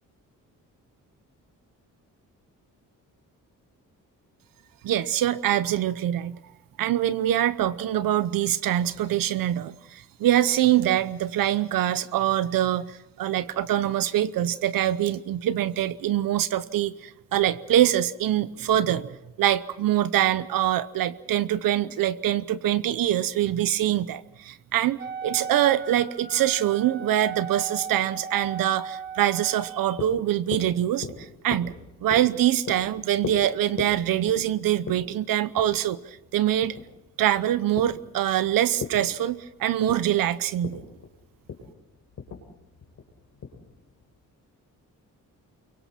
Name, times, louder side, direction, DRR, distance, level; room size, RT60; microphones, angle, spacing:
voice 1, 4.8-6.4 6.8-31.7 32.0-36.8 37.2-40.8, right 12 dB, 85° right, 15 dB, 0.9 m, -24 dB
Wind instrument woodwind instrument, 25.0-30.0, right 7 dB, 30° right, 1.3 m, -37 dB
sound 1, 29.6-44.1, left 5 dB, 60° left, 4.1 m, -40 dB
29.5 x 23.5 x 4.5 m, 0.92 s
cardioid pair, 135°, 33 cm